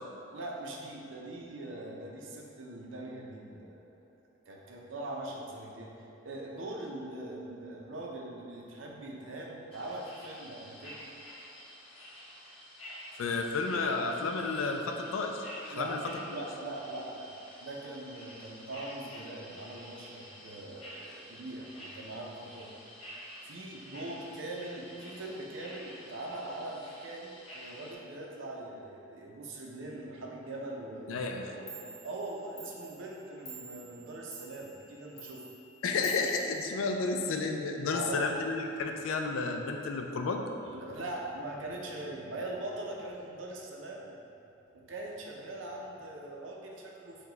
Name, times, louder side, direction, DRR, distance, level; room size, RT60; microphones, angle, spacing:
voice 1, 0.3-3.8 4.5-11.0 15.7-16.0 16.3-17.3 17.6-22.7 23.4-31.2 31.5-35.4 37.9-38.3 40.7-44.2 44.7-47.3, right 2 dB, 70° right, -1 dB, 0.5 m, -41 dB
sound 1, 9.7-27.9, equal, 30° left, 0.7 m, -49 dB
voice 2, 13.2-16.0 16.3-16.4 31.1-31.5 35.8-40.4, left 3 dB, 85° left, 3 dB, 0.4 m, -32 dB
Clock, 31.7-37.3, right 3 dB, 55° left, 1.0 m, -50 dB
4.7 x 2.3 x 3.8 m, 2.8 s
head